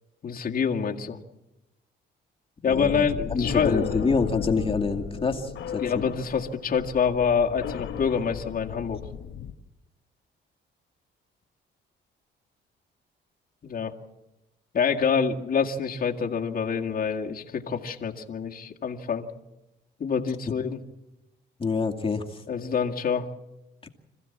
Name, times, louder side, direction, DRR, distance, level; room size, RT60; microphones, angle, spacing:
voice 1, 0.2-1.2 2.6-3.8 5.8-9.0 13.6-13.9 14.7-19.3 20.0-20.8 22.5-23.3, left 6 dB, 45° left, 0 dB, 2.1 m, -26 dB
sound 1, 2.7-9.5, left 8 dB, 70° left, 1.3 m, -35 dB
voice 2, 2.7-3.0 3.3-6.0 21.6-22.4 23.8-23.9, left 4 dB, 30° left, 5 dB, 2.3 m, -27 dB
26.5 x 15.5 x 7.3 m, 0.96 s
cardioid pair, 90°, 20 cm